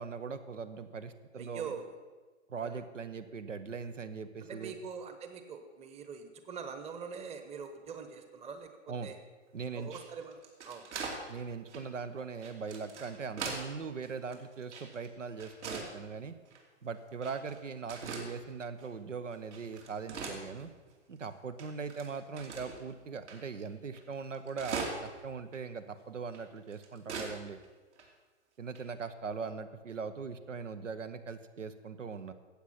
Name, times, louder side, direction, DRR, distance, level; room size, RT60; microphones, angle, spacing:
voice 1, 0.0-1.7 2.5-4.7 8.9-9.1 9.5-9.9 11.3-16.3 16.8-20.7 21.1-27.6 28.6-32.3, right 5 dB, 85° right, 11 dB, 1.1 m, -40 dB
voice 2, 1.4-1.9 2.6-2.8 4.4-9.2 9.7-10.9, right 6 dB, 15° right, 8 dB, 1.1 m, -43 dB
sound 1, 9.8-11.2 11.7-11.8 12.4-13.7 14.0-15.1 15.4-15.9 16.5-16.6 17.2-17.6 17.9-18.3 18.8-18.9 19.3-20.9 21.2-21.3 21.6-22.8 23.3-23.4 23.6-23.7 23.9-25.2 25.5-25.6 26.3-27.3 27.6-27.7 28.0-28.1 28.8-29.0, right 4 dB, 65° right, 3.0 m, -41 dB
14.5 x 8.6 x 5.8 m, 1.3 s
hypercardioid pair, 120°, 37 cm